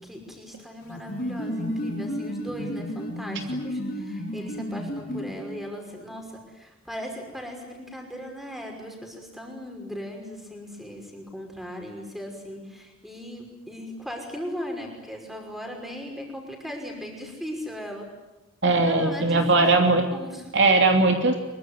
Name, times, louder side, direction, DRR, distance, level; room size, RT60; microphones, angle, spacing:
voice 1, 0.0-18.1 18.7-19.7 20.1-20.5, equal, ahead, 2 dB, 5.5 m, -38 dB
sound 1, 0.8-5.7, equal, 50° left, 5.0 m, -32 dB
voice 2, 18.6-20.1 20.5-21.4, right 3 dB, 55° right, 4 dB, 2.9 m, -19 dB
24.5 x 23.0 x 9.7 m, 1.0 s
head